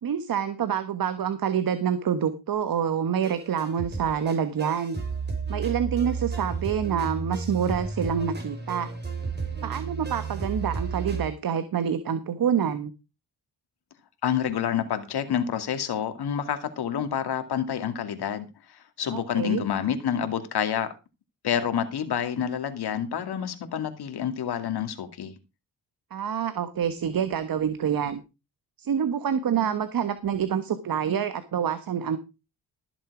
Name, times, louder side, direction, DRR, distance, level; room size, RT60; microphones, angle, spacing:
voice 1, 0.0-5.0 5.5-8.9 9.6-12.9 19.1-19.6 26.1-28.2 28.8-32.2, right 8 dB, 60° right, 1.3 m, -27 dB
sound 1, 3.2-11.3, right 4 dB, 25° right, 4.6 m, -33 dB
voice 2, 14.2-20.9 21.4-25.3, left 9 dB, 75° left, 2.4 m, -28 dB
14.5 x 7.3 x 4.9 m
cardioid pair, 70°, 39 cm